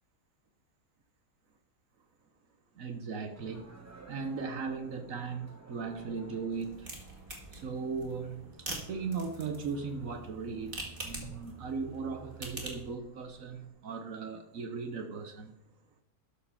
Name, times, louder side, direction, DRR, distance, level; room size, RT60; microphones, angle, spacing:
voice 1, 2.8-3.7 4.1-6.9 7.5-8.4 8.7-15.5, right 5 dB, 60° right, 1.1 m, -38 dB
sound 1, 3.3-13.7, right 1 dB, 10° right, 1.1 m, -56 dB
sound 2, 6.5-12.9, right 2 dB, 35° right, 2.0 m, -44 dB
12.5 x 4.5 x 5.6 m
omnidirectional pair, 1.7 m